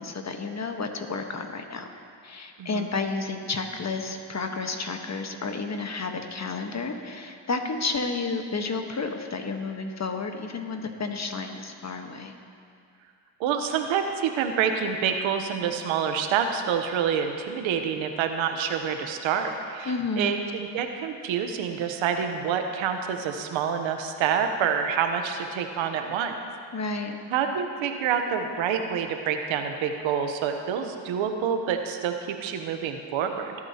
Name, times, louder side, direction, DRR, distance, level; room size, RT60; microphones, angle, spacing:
voice 1, 0.0-1.9 2.2-12.3 19.8-20.4 26.7-27.2, left 3 dB, 35° left, 5 dB, 1.3 m, -31 dB
voice 2, 13.4-26.3 27.3-33.5, right 7 dB, 80° right, 6 dB, 1.0 m, -27 dB
18.5 x 8.9 x 2.9 m, 2.3 s
supercardioid pair, 65°, 46 cm